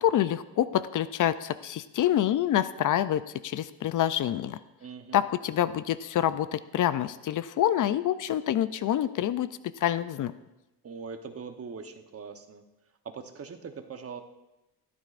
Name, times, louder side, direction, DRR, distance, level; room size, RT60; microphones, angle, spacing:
voice 1, 0.0-4.6 5.1-9.5 9.8-10.3, left 11 dB, 55° left, 14 dB, 0.4 m, -27 dB
voice 2, 4.8-5.2 10.8-12.6 13.0-14.2, right 5 dB, 35° right, 7 dB, 1.0 m, -41 dB
15.0 x 12.5 x 2.5 m, 0.99 s
cardioid pair, 115°, 39 cm